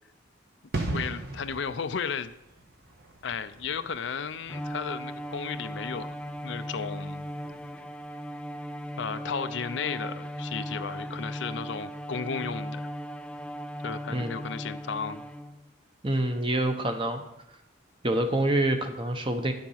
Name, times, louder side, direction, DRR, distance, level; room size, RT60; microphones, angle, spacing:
sound 1, 0.7-7.2 7.5-7.7, right 2 dB, 50° right, 1.4 m, -39 dB
voice 1, 0.9-2.3 3.2-6.1 6.4-7.3 9.0-12.9 13.8-15.2, left 6 dB, 70° left, 12 dB, 0.5 m, -34 dB
Bowed string instrument, 4.5-15.7, equal, 5° left, 0.4 m, -37 dB
voice 2, 16.0-17.2 18.0-19.5, right 1 dB, 25° right, 6 dB, 0.9 m, -26 dB
10.5 x 7.1 x 5.7 m, 0.92 s
head